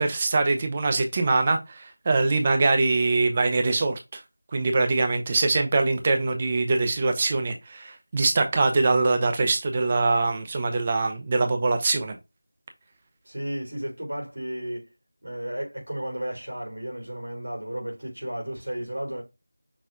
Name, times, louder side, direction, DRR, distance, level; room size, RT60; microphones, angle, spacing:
voice 1, 0.0-4.2 4.5-12.2, right 3 dB, 25° right, 0.6 m, -23 dB
voice 2, 13.2-14.9 15.2-19.2, right 1 dB, 75° right, 2.8 m, -33 dB
6.1 x 2.2 x 3.8 m
figure-of-eight pair, 170°, 0 cm